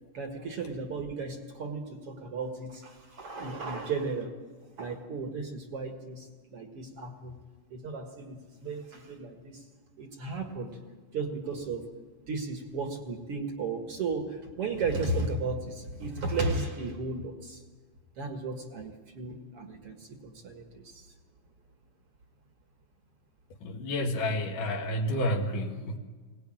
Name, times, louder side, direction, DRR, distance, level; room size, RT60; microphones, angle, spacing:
voice 1, 0.1-4.3 4.8-7.4 7.7-9.6 10.0-10.8 11.1-11.9 12.3-17.6 18.2-21.1, right 3 dB, 50° right, 4 dB, 2.1 m, -35 dB
voice 2, 23.6-26.0, left 1 dB, 65° left, 3 dB, 3.2 m, -30 dB
22.0 x 19.0 x 8.9 m, 1.4 s
omnidirectional pair, 4.1 m